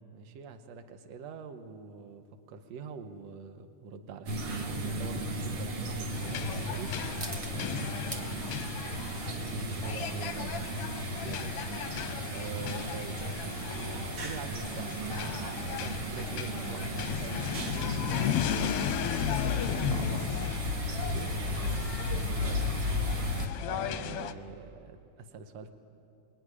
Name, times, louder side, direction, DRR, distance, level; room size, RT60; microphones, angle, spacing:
voice 1, 0.1-7.2 7.5-8.5 11.2-11.7 12.3-13.2 13.7-18.8 19.5-20.5 21.0-21.3 22.4-22.6 23.6-25.7, right 5 dB, 70° right, 7 dB, 2.4 m, -45 dB
sound 1, 1.6-18.2, right 2 dB, 30° right, 0.7 m, -52 dB
sound 2, 4.3-23.5, equal, 50° right, 2.5 m, -34 dB
sound 3, 6.1-24.3, left 10 dB, 70° left, 1.5 m, -36 dB
voice 2, 9.4-10.8 19.9-20.2 21.3-21.6 22.1-22.4, right 6 dB, 85° right, 8 dB, 2.4 m, -41 dB
23.0 x 23.0 x 10.0 m, 2.6 s
omnidirectional pair, 3.3 m